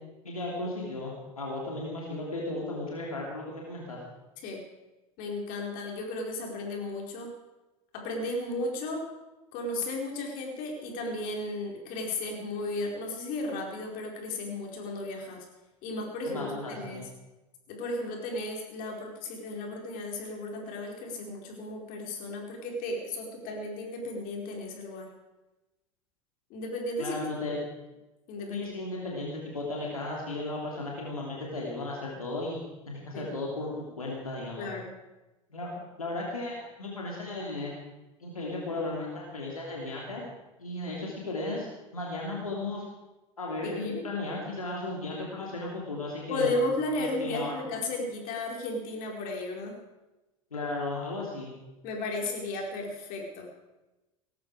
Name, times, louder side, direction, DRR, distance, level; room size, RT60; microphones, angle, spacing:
voice 1, 0.2-4.0 16.2-17.1 27.0-27.6 28.5-32.6 32.9-34.7 35.5-37.7 38.2-40.2 40.6-41.7 41.9-42.8 43.4-46.5 47.2-47.5 50.5-51.5, left 2 dB, 90° left, -2 dB, 2.9 m, -35 dB
voice 2, 5.2-7.3 7.9-9.0 9.5-15.4 15.8-17.1 17.7-25.1 26.5-27.2 28.3-28.8 33.1-33.3 34.6-34.9 43.6-44.0 46.3-49.8 51.8-53.5, left 2 dB, 55° left, 0 dB, 4.8 m, -34 dB
18.5 x 14.0 x 4.9 m, 1.1 s
hypercardioid pair, 75°, 18 cm